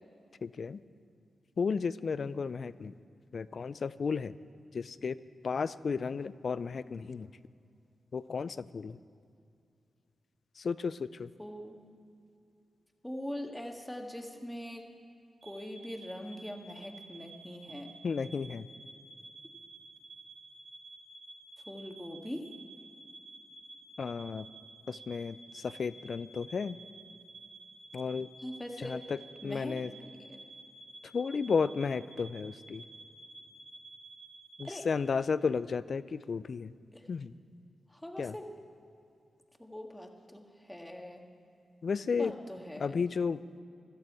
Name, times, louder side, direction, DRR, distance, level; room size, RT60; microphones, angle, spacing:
voice 1, 0.4-0.8 1.6-2.9 3.3-4.3 4.7-5.2 5.4-7.3 8.1-9.0 10.6-11.3 18.0-18.7 24.0-24.5 24.9-26.8 27.9-28.3 28.8-29.9 31.1-32.8 34.6-36.7 37.1-37.4 38.2-38.3 41.8-42.3 42.8-43.4, left 5 dB, 65° left, 16 dB, 0.4 m, -33 dB
voice 2, 11.4-11.8 13.0-14.8 15.4-18.0 21.7-22.5 28.4-29.0 29.4-30.4 34.6-34.9 36.9-37.0 37.9-38.5 39.6-41.2 42.2-43.0, equal, 10° left, 3 dB, 1.8 m, -42 dB
sound 1, 15.4-34.7, right 2 dB, 70° right, 1.4 m, -52 dB
16.5 x 12.5 x 4.7 m, 2.5 s
supercardioid pair, 40°, 0 cm